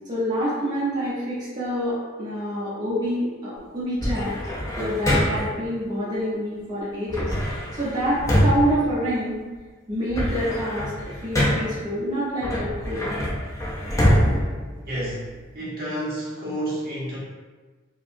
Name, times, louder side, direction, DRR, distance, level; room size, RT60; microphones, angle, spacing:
voice 1, 0.1-4.4 4.8-7.3 7.7-9.4 9.9-13.1, equal, 20° right, -10 dB, 1.0 m, -27 dB
sound 1, 4.0-5.6 7.1-9.6 9.9-11.9 12.4-15.4, equal, 15° left, 0.5 m, -24 dB
voice 2, 14.8-17.2, right 1 dB, 50° right, -8 dB, 1.0 m, -30 dB
4.8 x 2.3 x 2.6 m, 1.3 s
head